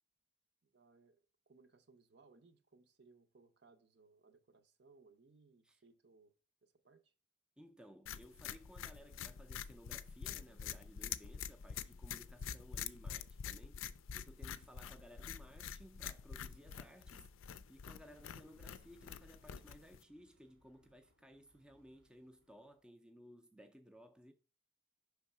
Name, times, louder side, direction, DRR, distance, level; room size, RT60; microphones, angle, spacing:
voice 1, 0.6-1.2 1.5-6.3 6.6-7.1, right 4 dB, 55° right, 0.7 m, -66 dB
voice 2, 7.6-13.8 14.1-17.3 17.7-24.3, equal, 5° right, 0.4 m, -59 dB
sound 1, 8.1-20.0, left 8 dB, 85° left, 0.4 m, -46 dB
sound 2, 17.8-22.9, left 1 dB, 80° right, 2.2 m, -70 dB
5.6 x 3.4 x 5.5 m
head